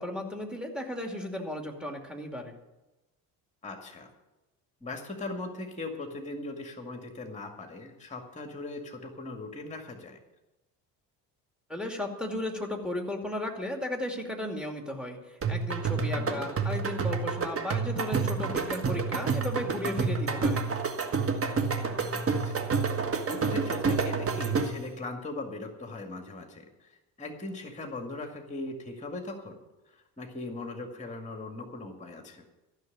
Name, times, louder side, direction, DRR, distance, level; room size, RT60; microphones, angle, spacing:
voice 1, 0.0-2.5 11.7-15.2 15.5-20.7, left 1 dB, ahead, 3 dB, 2.5 m, -35 dB
voice 2, 3.6-4.1 4.8-10.2 16.2-16.5 21.9-22.6 23.3-29.6 29.9-32.5, left 2 dB, 15° left, 4 dB, 2.1 m, -39 dB
sound 1, 15.4-24.9, right 5 dB, 25° right, 1.4 m, -29 dB
14.0 x 6.4 x 9.4 m, 1.0 s
hypercardioid pair, 60°, 49 cm